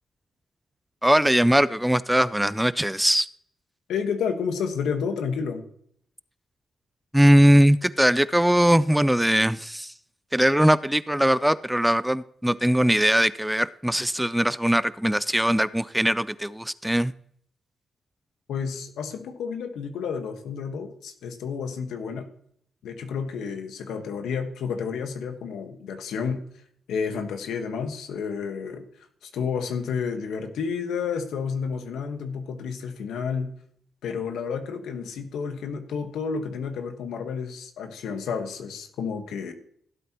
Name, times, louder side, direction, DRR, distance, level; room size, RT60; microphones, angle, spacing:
voice 1, 1.0-3.3 7.1-9.9 10.3-17.1, equal, 5° right, 17 dB, 0.4 m, -20 dB
voice 2, 3.9-5.7 18.5-22.3 22.8-26.4 26.9-28.9 29.2-33.5 34.0-39.5, left 6 dB, 85° left, 6 dB, 1.4 m, -30 dB
16.0 x 8.3 x 3.0 m, 0.66 s
cardioid pair, 65°, 0 cm